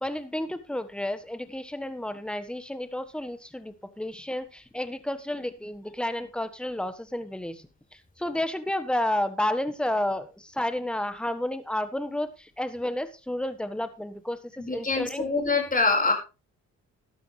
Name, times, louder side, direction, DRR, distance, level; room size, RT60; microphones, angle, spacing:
voice 1, 0.0-14.4 14.7-15.2, left 1 dB, 5° left, 11 dB, 1.3 m, -31 dB
voice 2, 14.6-16.1, left 3 dB, 30° left, 4 dB, 4.7 m, -24 dB
12.5 x 12.0 x 3.3 m, 0.30 s
cardioid pair, 90°, 30 cm